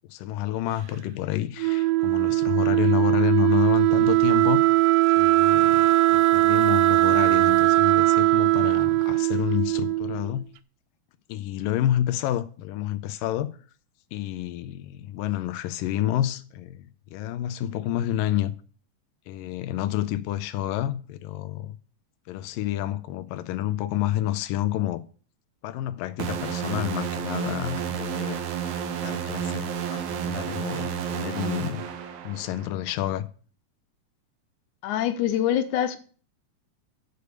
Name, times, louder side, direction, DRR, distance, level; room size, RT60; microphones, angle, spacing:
voice 1, 0.1-4.8 5.2-10.4 11.3-13.5 14.1-18.5 19.3-21.8 22.3-25.0 25.6-28.4 28.9-31.9 32.2-33.3, left 13 dB, 90° left, 2.3 m, -29 dB
Wind instrument woodwind instrument, 1.6-10.3, right 19 dB, 85° right, 2.2 m, -20 dB
sound 1, 26.2-32.7, right 8 dB, 70° right, 2.3 m, -31 dB
voice 2, 34.8-36.0, left 11 dB, 75° left, 2.0 m, -24 dB
6.8 x 6.7 x 7.8 m
omnidirectional pair, 3.9 m